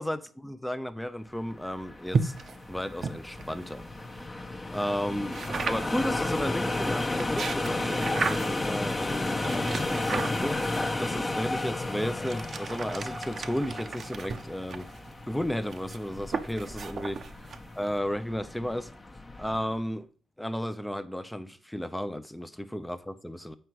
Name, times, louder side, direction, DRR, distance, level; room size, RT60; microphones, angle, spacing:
voice 1, 0.0-2.3 2.7-4.4 4.7-5.4 5.7-10.6 11.0-14.9 15.3-18.9 19.4-20.1 20.4-23.6, equal, 5° left, 0.7 m, -33 dB
sound 1, 1.5-19.8, left 2 dB, 25° left, 1.1 m, -33 dB
sound 2, 2.1-4.3 5.3-6.1 7.0-8.7 9.4-10.8 11.6-18.0, right 5 dB, 50° right, 0.8 m, -35 dB
7.8 x 4.9 x 4.7 m
cardioid pair, 90°, 0 cm